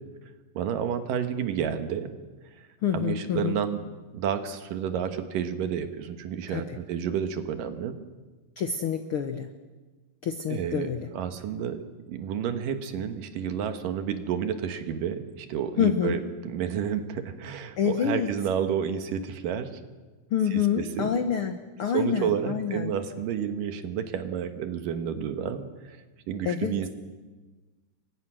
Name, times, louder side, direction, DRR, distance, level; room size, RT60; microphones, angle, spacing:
voice 1, 0.6-2.1 2.9-3.8 4.1-8.0 10.5-19.7 20.5-21.1 21.9-26.0 26.3-26.9, right 8 dB, 75° right, 8 dB, 3.0 m, -30 dB
voice 2, 2.8-3.6 6.5-6.8 8.6-9.5 10.2-11.1 15.8-16.2 17.8-18.3 20.3-22.9 26.4-26.7, left 8 dB, 75° left, 8 dB, 1.2 m, -27 dB
29.0 x 23.5 x 6.3 m, 1.3 s
omnidirectional pair, 4.0 m